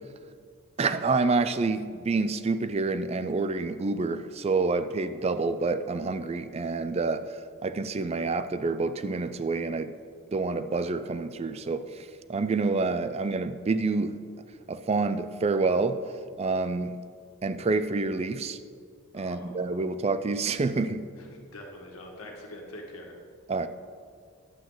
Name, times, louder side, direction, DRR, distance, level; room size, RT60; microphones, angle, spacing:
voice 1, 0.8-7.3 7.6-9.9 10.3-14.2 14.7-16.0 16.4-17.0 17.4-18.6 19.1-21.0 23.5-23.7, right 3 dB, 30° right, 11 dB, 0.3 m, -28 dB
voice 2, 19.1-19.8 21.1-23.1, left 1 dB, 85° left, 0 dB, 1.6 m, -44 dB
11.5 x 7.8 x 3.9 m, 2.1 s
head